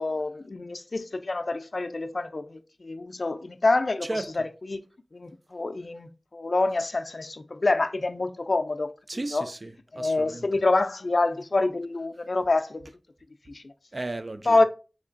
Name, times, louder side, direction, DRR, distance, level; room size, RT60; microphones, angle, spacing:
voice 1, 0.0-4.8 5.1-9.5 10.0-12.8 13.5-13.7 14.4-14.6, left 2 dB, 80° left, 0.3 m, -27 dB
voice 2, 4.0-4.3 9.1-10.5 13.9-14.6, right 2 dB, 60° right, 0.3 m, -34 dB
3.6 x 3.2 x 2.5 m
wide cardioid pair, 40°, 0 cm